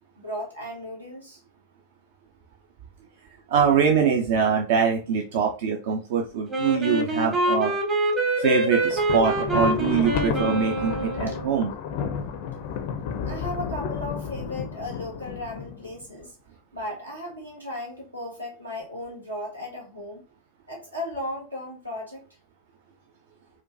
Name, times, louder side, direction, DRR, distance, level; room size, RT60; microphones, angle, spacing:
voice 1, 0.2-1.4 11.3-11.4 13.2-16.3 16.7-20.2 20.7-22.2, left 1 dB, 85° right, -2 dB, 1.3 m, -35 dB
voice 2, 3.5-7.7 8.4-11.7, right 6 dB, 50° right, 2 dB, 0.5 m, -23 dB
Wind instrument woodwind instrument, 6.5-11.6, right 1 dB, 20° right, 0.8 m, -26 dB
Thunder, 8.8-16.0, left 6 dB, 50° left, 0.4 m, -32 dB
4.3 x 2.3 x 2.5 m, 0.34 s
figure-of-eight pair, 90°, 0 cm